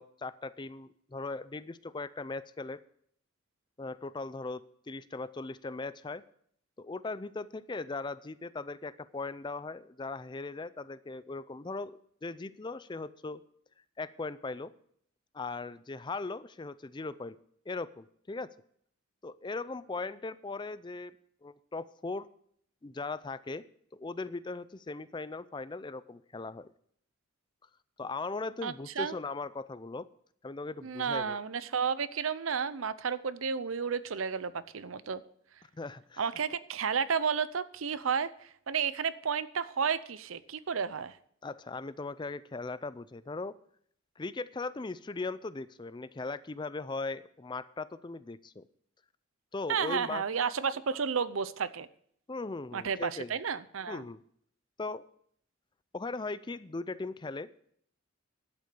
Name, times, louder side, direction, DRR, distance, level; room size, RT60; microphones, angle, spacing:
voice 1, 0.0-2.8 3.8-6.2 6.8-13.4 14.0-14.7 15.3-17.4 17.7-18.5 19.2-21.1 21.4-22.3 22.8-23.6 23.9-26.7 28.0-30.1 30.4-31.4 35.7-36.2 41.4-43.5 44.2-48.7 49.5-50.2 52.3-53.3 53.9-54.2 54.8-55.0 55.9-57.5, left 3 dB, 20° left, 16 dB, 0.4 m, -39 dB
voice 2, 28.6-29.2 30.8-35.2 36.2-41.2 49.7-51.9 52.7-54.0, right 6 dB, 80° right, 15 dB, 0.7 m, -32 dB
11.5 x 8.3 x 6.9 m, 0.64 s
head